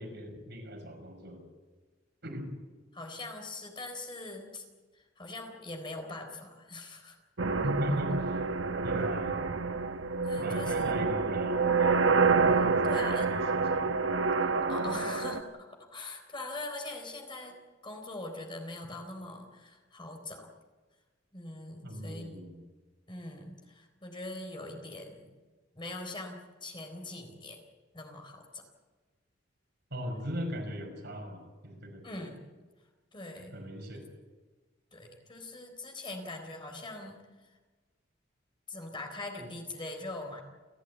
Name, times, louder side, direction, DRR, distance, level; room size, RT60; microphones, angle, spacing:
voice 1, 0.0-1.4 2.2-2.5 7.6-8.4 8.8-9.3 10.4-12.1 12.6-13.9 21.8-22.6 29.9-32.0 33.5-34.1, equal, 60° right, 3 dB, 6.0 m, -38 dB
voice 2, 2.9-4.6 4.9-7.2 10.2-10.9 12.5-13.3 14.4-17.6 17.8-20.5 21.3-22.4 23.1-25.3 25.7-27.6 27.9-28.6 32.0-32.4 33.1-33.5 34.9-37.6 38.7-40.4, left 2 dB, 25° left, 2 dB, 3.9 m, -42 dB
sound 1, 7.4-15.4, right 4 dB, 85° right, 1.1 m, -28 dB
30.0 x 14.0 x 8.5 m, 1.3 s
head